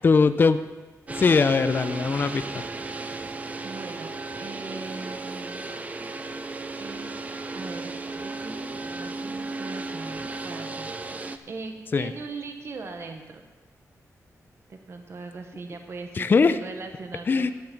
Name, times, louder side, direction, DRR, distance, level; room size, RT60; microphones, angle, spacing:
voice 1, 0.0-0.6 1.2-2.6 11.9-12.1 16.2-16.6 17.3-17.5, left 4 dB, 35° left, 11 dB, 0.4 m, -20 dB
sound 1, 1.1-11.4, right 3 dB, 25° right, 0.6 m, -35 dB
voice 2, 3.6-5.7 6.8-7.3 7.5-13.4 14.7-17.5, right 4 dB, 45° right, 5 dB, 1.0 m, -40 dB
11.5 x 9.2 x 5.9 m, 1.2 s
wide cardioid pair, 160°, 6 cm